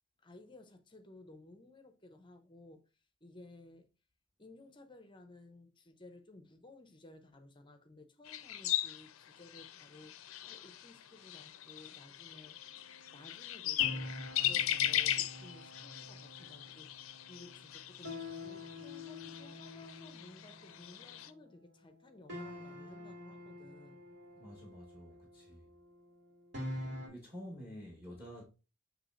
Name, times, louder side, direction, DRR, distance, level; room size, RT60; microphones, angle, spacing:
voice 1, 0.2-2.9 3.2-3.9 4.4-12.8 13.1-24.0, left 2 dB, 25° left, 0.6 m, -56 dB
sound 1, 8.3-21.3, left 12 dB, 85° left, 0.4 m, -38 dB
sound 2, 12.4-21.7 22.3-27.1, left 1 dB, 60° right, 2.3 m, -47 dB
voice 2, 24.4-25.6 27.0-28.5, equal, 10° right, 1.1 m, -49 dB
6.7 x 3.2 x 2.5 m
head